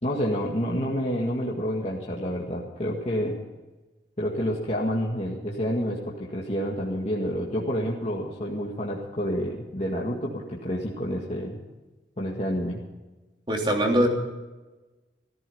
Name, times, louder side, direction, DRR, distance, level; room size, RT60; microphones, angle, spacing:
voice 1, 0.0-3.4 4.2-11.6 12.2-12.8, equal, 35° left, -4 dB, 2.0 m, -29 dB
voice 2, 13.5-14.1, right 1 dB, 30° right, 0 dB, 3.2 m, -22 dB
15.5 x 14.0 x 5.5 m, 1.1 s
head